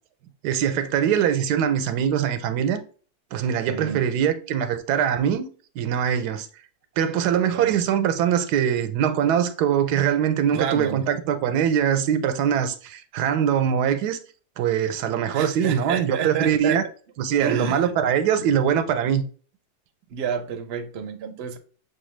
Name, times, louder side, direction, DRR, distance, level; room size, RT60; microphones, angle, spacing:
voice 1, 0.4-2.8 3.3-5.5 5.8-6.5 7.0-14.2 14.6-16.8 17.2-19.2, right 9 dB, 85° right, 1.1 m, -22 dB
voice 2, 3.7-4.1 7.5-7.8 10.5-11.1 15.3-16.8 17.4-17.8 18.3-18.5 20.1-21.6, right 7 dB, 60° right, 0.7 m, -29 dB
6.0 x 2.3 x 3.1 m
omnidirectional pair, 1.7 m